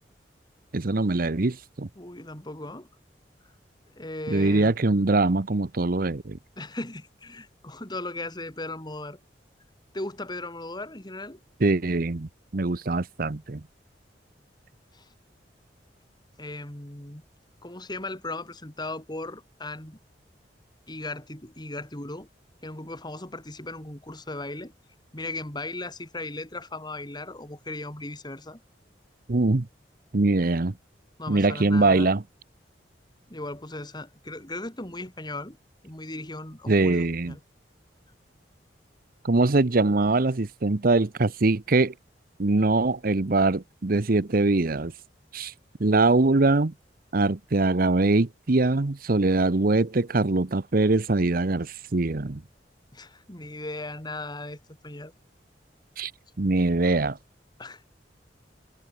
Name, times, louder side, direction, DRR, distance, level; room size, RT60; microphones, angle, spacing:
voice 1, 0.7-1.9 4.3-6.4 11.6-13.6 29.3-29.7 30.1-30.7 31.3-32.2 36.7-37.3 39.2-41.9 42.4-44.9 45.3-45.5 45.8-46.7 47.1-52.4 56.0-56.1 56.4-57.2, right 2 dB, 55° right, 0.9 m, -23 dB
voice 2, 2.0-2.9 4.0-4.8 6.6-9.2 9.9-11.4 14.9-15.1 16.4-17.2 17.6-20.0 20.9-22.3 22.6-24.7 25.1-28.6 31.2-32.1 33.3-35.6 35.8-37.4 52.9-54.6 54.8-55.1 57.6-57.8, left 2 dB, 25° left, 3.5 m, -37 dB
head